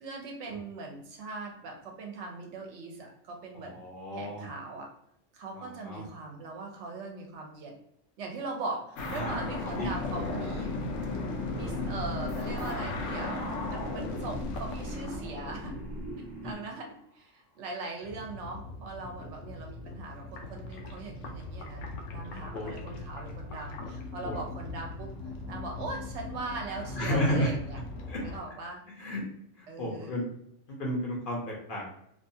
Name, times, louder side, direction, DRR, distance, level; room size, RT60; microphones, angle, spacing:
voice 1, 0.0-3.8 4.1-4.9 5.3-7.8 8.2-10.7 11.5-13.4 13.7-15.8 16.4-25.1 25.4-27.8 28.2-28.8 29.7-30.2, right 3 dB, 70° right, 2 dB, 0.8 m, -40 dB
voice 2, 3.5-4.4 5.5-6.0 9.1-9.3 9.8-9.9 10.1-10.2 16.4-16.5 19.2-19.3 22.5-22.7 24.2-24.4 27.0-27.5 28.1-28.2 29.0-29.2 29.6-30.2 30.7-32.0, equal, 50° left, -3 dB, 0.7 m, -32 dB
sound 1, 9.0-16.0 18.0-28.4, left 2 dB, 85° left, 0.9 m, -37 dB
sound 2, 11.4-16.5, right 1 dB, 40° right, 0.9 m, -41 dB
2.6 x 2.3 x 2.6 m, 0.74 s
omnidirectional pair, 1.3 m